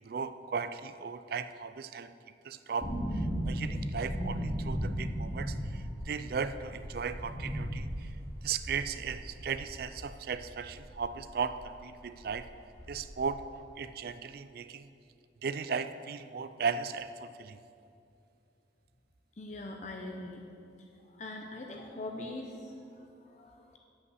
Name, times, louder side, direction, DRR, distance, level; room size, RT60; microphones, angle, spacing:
voice 1, 0.1-2.1 2.4-8.1 8.4-12.5 12.9-13.4 13.8-14.9 15.4-17.6, right 6 dB, 55° right, 12 dB, 0.4 m, -36 dB
sound 1, 2.8-11.6 11.9-12.0 12.3-13.3 13.6-13.7, equal, 15° left, 1.6 m, -37 dB
voice 2, 19.4-20.5 21.0-23.8, left 2 dB, 40° left, 1 dB, 0.6 m, -42 dB
8.1 x 5.6 x 7.7 m, 2.6 s
head